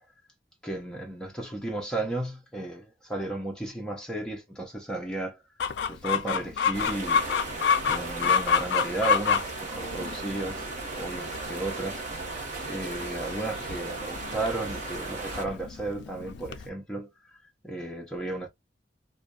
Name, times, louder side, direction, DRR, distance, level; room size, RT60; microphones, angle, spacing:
voice 1, 0.6-5.4 5.8-7.2 7.8-10.6 10.9-17.1 17.6-18.5, right 2 dB, 5° left, 0.7 m, -34 dB
Chicken rooster, 5.6-16.7, left 7 dB, 65° left, 0.3 m, -29 dB
sound 1, 6.7-15.5, right 2 dB, 45° right, 1.1 m, -36 dB
2.5 x 2.2 x 2.3 m
head